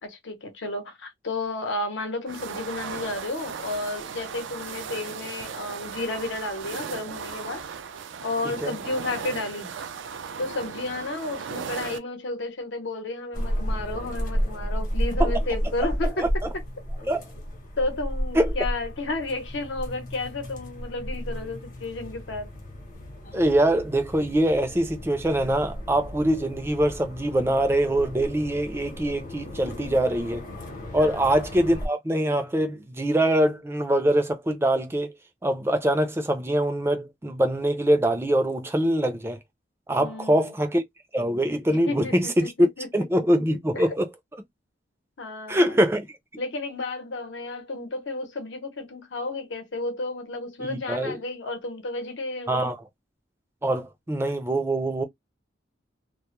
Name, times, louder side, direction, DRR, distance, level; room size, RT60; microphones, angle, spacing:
voice 1, 0.0-7.6 8.2-9.7 10.4-16.3 17.8-22.5 29.7-29.9 31.0-31.2 40.0-40.5 41.7-43.1 43.7-43.8 45.2-45.8 46.4-52.7, left 2 dB, 80° left, 0.8 m, -32 dB
sound 1, 2.3-12.0, right 6 dB, 85° right, 0.4 m, -37 dB
voice 2, 8.4-8.8 15.2-15.4 16.0-16.3 17.1-17.2 18.3-18.5 23.3-30.4 30.9-35.1 35.4-39.4 39.9-40.8 41.1-42.5 42.9-44.1 45.5-46.1 50.6-51.2 52.5-52.8 53.6-55.0, right 1 dB, 15° right, 0.4 m, -24 dB
sound 2, 13.3-31.9, equal, 45° left, 0.8 m, -32 dB
2.2 x 2.0 x 2.9 m
head